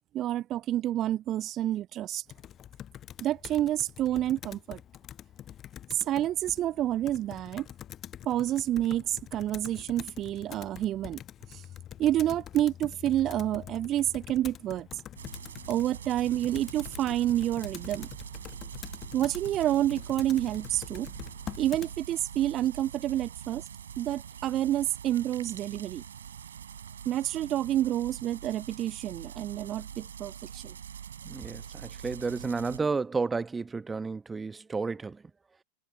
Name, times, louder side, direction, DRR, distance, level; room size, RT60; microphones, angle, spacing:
voice 1, 0.1-2.2 3.2-4.8 6.1-7.7 8.3-11.2 12.0-14.9 15.7-18.1 19.1-21.1 21.6-23.6 24.0-26.0 27.1-30.7, right 12 dB, 30° right, 0.3 m, -29 dB
Computer keyboard, 2.3-21.9, left 10 dB, 30° left, 0.9 m, -45 dB
sound 1, 15.1-32.8, right 8 dB, 65° right, 7.9 m, -44 dB
voice 2, 31.2-35.2, right 4 dB, 15° right, 1.1 m, -32 dB
figure-of-eight pair, 90°, 0 cm